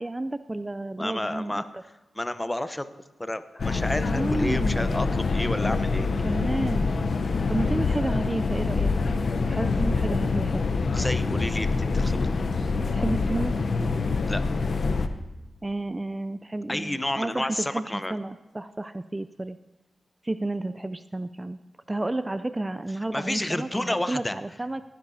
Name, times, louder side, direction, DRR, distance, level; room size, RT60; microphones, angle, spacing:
voice 1, 0.0-1.6 4.1-5.0 6.2-6.9 7.2-8.9 9.5-10.6 11.0-11.1 12.8-13.6 15.6-19.6 20.2-21.6 21.9-24.8, right 2 dB, 25° right, 13 dB, 0.4 m, -31 dB
voice 2, 1.0-1.6 2.1-2.9 3.2-6.1 10.9-12.3 14.3-14.4 16.7-18.2 23.1-24.4, left 1 dB, 15° left, 11 dB, 0.7 m, -30 dB
sound 1, 3.6-15.1, left 4 dB, 65° left, 0.7 m, -25 dB
18.0 x 10.5 x 2.7 m, 1.1 s
cardioid pair, 50°, 0 cm